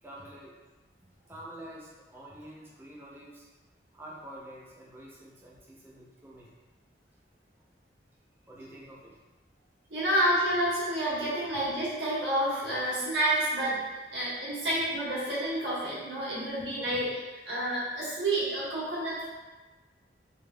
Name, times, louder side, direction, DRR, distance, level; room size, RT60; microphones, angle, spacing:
voice 1, 0.0-0.6 1.3-3.4 3.9-6.5 8.5-9.2 16.8-17.0, right 1 dB, 10° right, -5 dB, 0.5 m, -47 dB
voice 2, 9.9-13.8 14.1-17.2 17.4-19.3, right 1 dB, 80° right, -9 dB, 1.4 m, -29 dB
3.4 x 2.8 x 2.2 m, 1.2 s
head